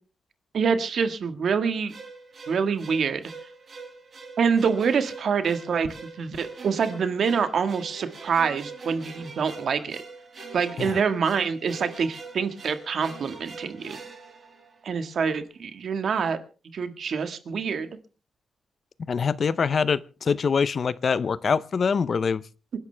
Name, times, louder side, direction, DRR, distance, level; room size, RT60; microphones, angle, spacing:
voice 1, 0.5-1.9 2.5-3.3 4.4-5.9 6.2-10.0 10.5-14.0 14.8-16.4 16.7-17.9, right 6 dB, 60° right, 1.7 m, -26 dB
sound 1, 1.9-15.1, right 4 dB, 45° right, 6.8 m, -43 dB
voice 2, 19.1-22.4, left 5 dB, 45° left, 0.6 m, -24 dB
27.5 x 11.5 x 3.4 m
wide cardioid pair, 135°, 0 cm